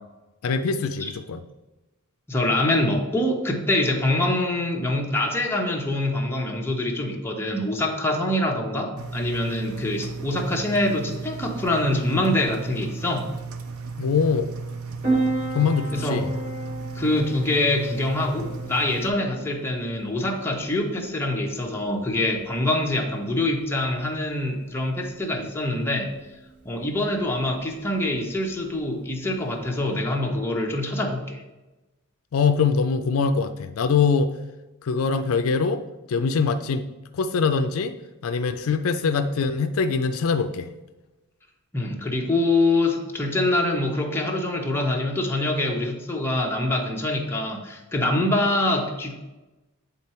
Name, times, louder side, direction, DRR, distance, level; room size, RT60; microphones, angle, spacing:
voice 1, 0.4-1.4 14.0-14.5 15.5-16.3 32.3-34.3 34.8-35.8 36.1-36.9 37.1-37.9 38.2-40.7, left 5 dB, 70° left, 9 dB, 0.4 m, -23 dB
voice 2, 2.3-13.3 15.9-16.2 16.9-26.1 26.6-31.4 41.7-49.2, left 1 dB, 10° left, 0 dB, 0.9 m, -25 dB
Engine, 9.0-19.1, right 4 dB, 75° right, 0.6 m, -35 dB
Piano, 15.0-30.0, right 2 dB, 35° right, 2.4 m, -35 dB
8.4 x 3.7 x 4.3 m, 1.1 s
head